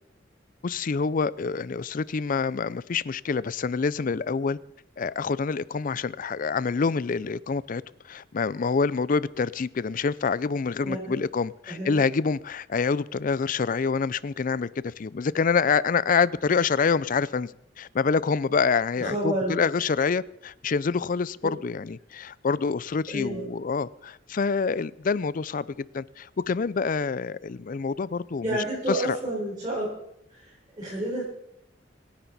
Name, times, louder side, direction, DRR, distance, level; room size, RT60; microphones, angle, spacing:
voice 1, 0.6-4.6 5.0-7.8 8.1-17.5 17.8-25.7 25.9-28.6 28.9-29.2, left 5 dB, 45° left, 19 dB, 0.4 m, -26 dB
voice 2, 10.8-11.2 11.7-12.0 18.9-19.6 23.1-23.4 28.4-29.9 30.3-31.2, right 1 dB, 25° right, -7 dB, 5.0 m, -30 dB
25.5 x 10.5 x 4.1 m, 0.76 s
head